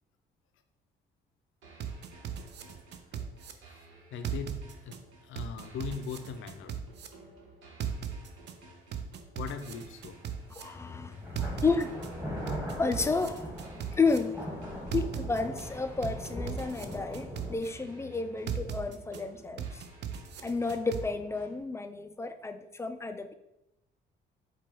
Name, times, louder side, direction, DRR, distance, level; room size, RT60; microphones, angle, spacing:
sound 1, 1.6-21.6, right 2 dB, 80° right, 1.1 m, -55 dB
sound 2, 1.8-3.5 4.2-5.0 5.4-7.1 7.8-8.5 8.9-10.6 11.4-12.1 12.5-14.2 14.9-15.6 16.0-17.7 18.5-19.2 19.6-21.0, right 9 dB, 60° right, 0.5 m, -37 dB
voice 1, 4.1-4.6 4.8-5.0 5.2-6.8 9.4-10.2, left 6 dB, 80° left, 7 dB, 0.5 m, -39 dB
sound 3, 10.3-10.4 11.1-17.6, equal, 10° right, 1.3 m, -40 dB
voice 2, 10.5-11.2 11.4-11.9 12.8-13.5 14.0-14.4 14.9-19.8 20.4-23.3, left 4 dB, 15° left, 8 dB, 0.3 m, -31 dB
4.6 x 2.3 x 4.4 m, 0.87 s
cardioid pair, 90°, 20 cm